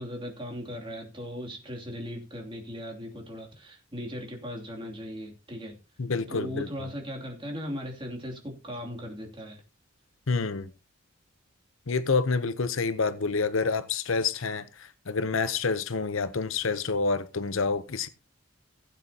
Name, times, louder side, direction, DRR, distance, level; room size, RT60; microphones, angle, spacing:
voice 1, 0.0-5.8 6.3-9.6, equal, 25° right, 2.8 m, -38 dB
voice 2, 6.0-6.7 10.3-10.7 11.9-18.1, left 4 dB, 70° left, 0.8 m, -28 dB
16.5 x 9.0 x 2.9 m
head